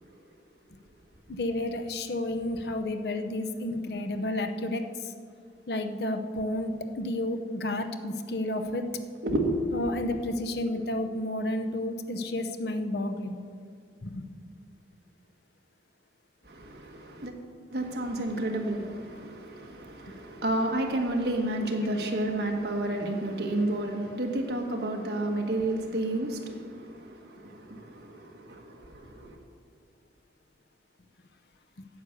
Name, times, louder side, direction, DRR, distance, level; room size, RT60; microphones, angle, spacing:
voice 1, 1.3-4.8 5.7-8.9 9.7-13.4 14.0-14.3, left 1 dB, 65° left, 0.7 m, -31 dB
voice 2, 16.5-17.3 17.7-29.3, right 1 dB, 65° right, 1.4 m, -31 dB
9.5 x 8.3 x 6.7 m
head